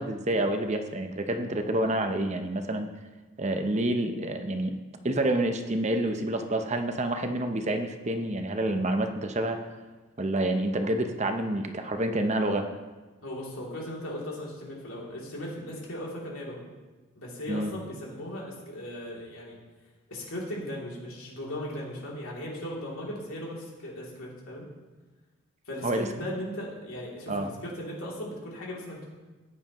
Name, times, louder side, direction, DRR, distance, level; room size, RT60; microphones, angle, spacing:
voice 1, 0.0-2.9 3.4-4.8 5.0-9.6 10.2-12.7 17.5-17.7 25.8-26.1 27.3-27.5, right 1 dB, 35° right, 6 dB, 0.7 m, -28 dB
voice 2, 13.2-16.6 17.1-19.6 20.1-24.7 25.7-29.1, left 1 dB, 90° left, -4 dB, 3.0 m, -37 dB
14.0 x 9.7 x 3.1 m, 1.3 s
head